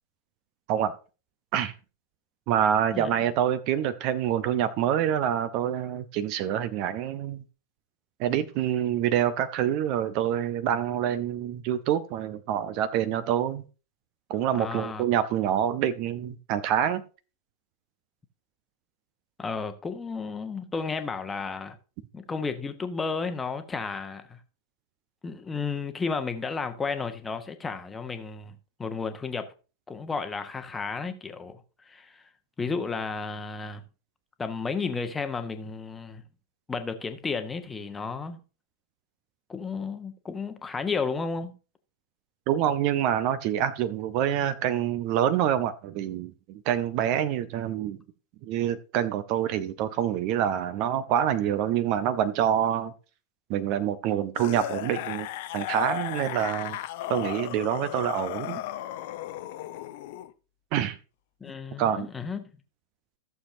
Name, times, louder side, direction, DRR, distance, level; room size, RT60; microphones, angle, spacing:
voice 1, 2.5-7.4 8.2-13.6 14.3-17.0 42.5-48.0 48.4-52.9 53.5-55.3 55.5-56.8 57.1-58.6 60.7-61.0 61.8-62.1, right 10 dB, 45° right, 0.7 m, -26 dB
voice 2, 14.6-15.0 19.4-21.8 22.1-24.4 25.2-29.5 29.9-32.2 32.6-33.8 34.4-36.2 36.7-38.4 39.5-41.5 61.4-62.4, left 4 dB, 15° left, 1.1 m, -33 dB
sound 1, 54.4-60.3 61.5-61.6, left 14 dB, 50° left, 0.6 m, -35 dB
14.5 x 6.9 x 2.7 m
figure-of-eight pair, 90°, 0 cm